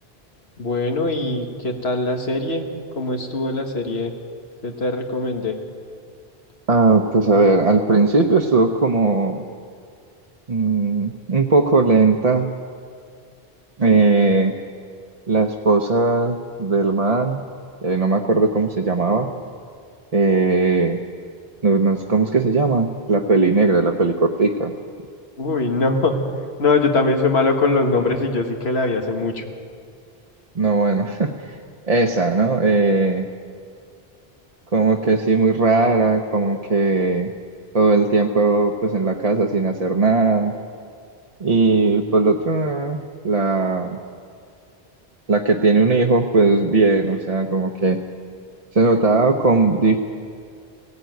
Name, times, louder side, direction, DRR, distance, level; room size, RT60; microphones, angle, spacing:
voice 1, 0.6-2.7 3.0-4.1 4.6-5.6 25.4-26.1 26.6-29.4, left 3 dB, 90° left, 4 dB, 2.0 m, -21 dB
voice 2, 6.7-9.4 10.5-12.5 13.8-14.5 15.3-17.4 17.8-19.3 20.1-21.0 21.6-24.7 30.5-31.6 31.9-33.3 34.7-37.3 37.7-40.5 41.4-44.0 45.3-48.0 48.7-50.0, right 3 dB, 40° right, 2 dB, 0.9 m, -18 dB
17.5 x 16.5 x 9.3 m, 2.2 s
omnidirectional pair, 1.0 m